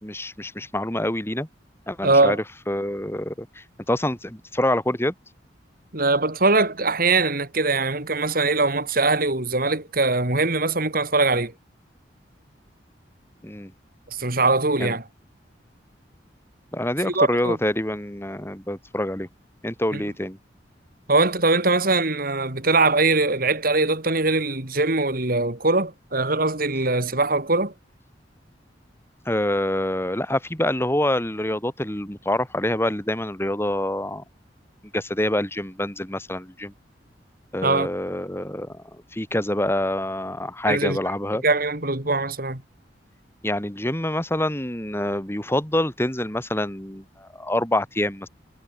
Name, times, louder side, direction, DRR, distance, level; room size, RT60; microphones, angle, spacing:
voice 1, 0.0-1.5 1.9-5.1 13.4-13.7 14.8-14.9 16.7-19.3 19.6-20.4 29.2-34.2 34.9-36.7 37.5-38.8 39.1-41.4 43.4-48.3, left 1 dB, 15° left, 5.0 m, -26 dB
voice 2, 2.0-2.4 5.9-11.5 14.1-15.0 17.0-17.6 19.9-20.0 21.1-27.7 37.6-37.9 40.7-41.0 41.4-42.6, right 3 dB, 55° right, 4.1 m, -21 dB
head